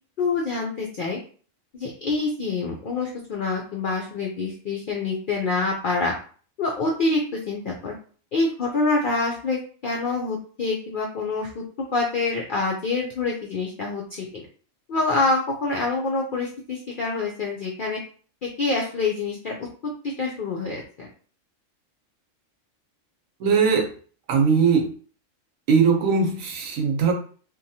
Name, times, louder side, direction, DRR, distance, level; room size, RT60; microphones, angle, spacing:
voice 1, 0.2-1.2 1.7-6.1 6.6-7.2 7.5-7.9 8.3-11.6 11.9-14.5 14.9-18.0 18.4-19.5 20.0-21.1, left 3 dB, 70° left, 0 dB, 0.5 m, -26 dB
voice 2, 23.4-23.9 24.3-24.9 25.7-27.1, right 5 dB, 75° right, 2 dB, 1.1 m, -20 dB
2.8 x 2.2 x 2.7 m, 0.42 s
omnidirectional pair, 1.4 m